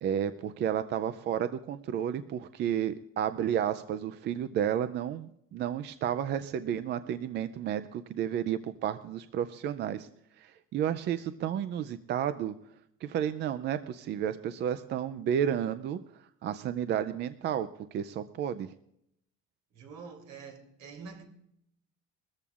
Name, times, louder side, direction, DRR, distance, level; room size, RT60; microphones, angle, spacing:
voice 1, 0.0-10.1 10.4-12.5 13.0-16.0 16.4-18.7, right 9 dB, 35° right, 0.4 m, -32 dB
voice 2, 19.7-21.2, right 5 dB, 70° right, 3.2 m, -46 dB
21.5 x 14.0 x 2.4 m
cardioid pair, 180°, 30 cm